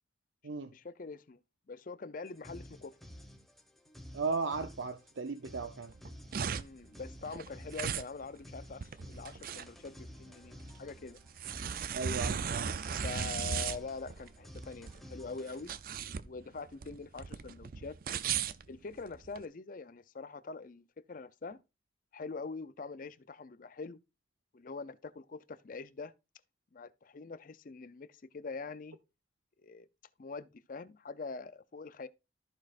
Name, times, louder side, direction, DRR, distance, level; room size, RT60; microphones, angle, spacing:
voice 1, 0.7-1.4 1.7-2.9 6.5-11.2 13.0-15.7 16.2-18.0 18.7-21.6 22.1-24.0 24.5-26.1 26.7-29.0 29.6-29.9 30.2-32.1, left 4 dB, 45° left, 0.5 m, -44 dB
sound 1, 2.3-15.7, equal, ahead, 1.2 m, -52 dB
voice 2, 4.1-5.9 11.9-12.7, right 4 dB, 90° right, 0.7 m, -36 dB
sound 2, 5.9-19.4, right 7 dB, 50° right, 0.5 m, -37 dB
14.0 x 6.3 x 2.5 m
head